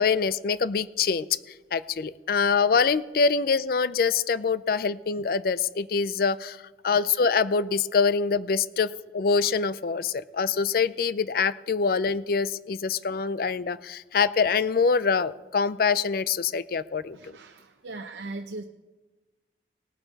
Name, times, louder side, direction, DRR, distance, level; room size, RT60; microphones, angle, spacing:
voice 1, 0.0-1.4 1.7-6.6 6.8-17.3, left 5 dB, 55° left, 17 dB, 0.4 m, -25 dB
voice 2, 17.1-18.6, right 2 dB, 90° right, 6 dB, 0.7 m, -39 dB
18.5 x 9.0 x 4.1 m, 1.2 s
head